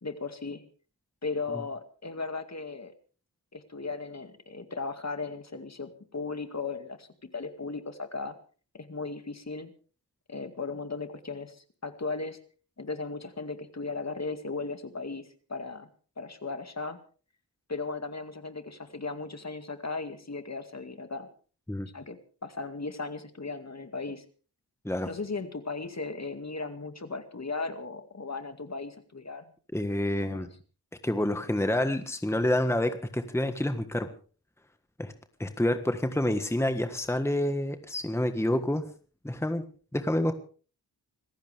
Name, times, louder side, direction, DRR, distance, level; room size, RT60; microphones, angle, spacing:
voice 1, 0.0-0.6 1.2-2.9 3.5-7.1 7.3-8.4 8.7-9.7 10.3-12.4 12.8-15.9 16.2-17.0 17.7-21.3 21.9-24.2 25.0-29.5 30.2-30.5, left 3 dB, 40° left, 8 dB, 2.2 m, -36 dB
voice 2, 29.7-30.5 31.0-34.1 35.0-35.1 35.4-38.8 39.2-39.6 39.9-40.3, left 1 dB, 5° left, 8 dB, 1.5 m, -28 dB
26.5 x 14.5 x 3.5 m, 0.39 s
wide cardioid pair, 75°, 40 cm